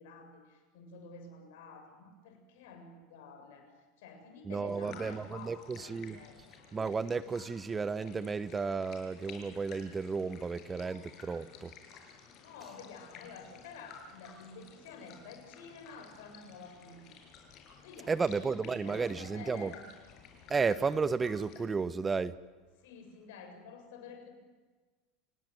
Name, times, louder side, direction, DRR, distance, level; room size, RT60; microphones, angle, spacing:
voice 1, 0.0-6.7 11.1-11.2 11.5-11.6 12.2-17.1 17.8-18.4 18.7-19.8 22.8-24.4, left 5 dB, 75° left, 4 dB, 7.3 m, -50 dB
voice 2, 4.5-6.2 6.7-11.7 18.1-19.7 20.5-22.3, right 4 dB, 20° right, 15 dB, 1.0 m, -33 dB
sound 1, 4.6-21.6, left 6 dB, 50° left, 6.8 m, -54 dB
28.5 x 18.0 x 9.4 m, 1.3 s
hypercardioid pair, 100°, 0 cm